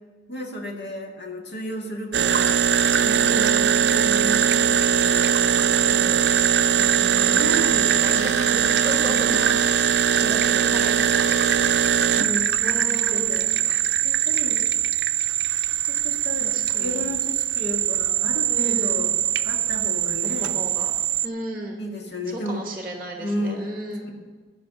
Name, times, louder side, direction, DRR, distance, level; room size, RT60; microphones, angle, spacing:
voice 1, 0.3-6.3 7.3-11.9 12.1-13.5 14.0-14.6 15.9-19.1 19.4-20.6 21.8-22.6 23.2-23.7, equal, 65° left, 1 dB, 1.8 m, -33 dB
sound 1, 2.1-21.3, right 8 dB, 65° right, 0.5 m, -21 dB
voice 2, 3.3-3.8 6.7-7.5 8.0-9.4 10.2-10.9 12.6-13.6 16.4-17.0 18.5-19.0 20.4-20.9 21.2-21.8 22.3-24.1, right 1 dB, 10° right, 1 dB, 1.1 m, -34 dB
14.5 x 5.8 x 6.9 m, 1.5 s
head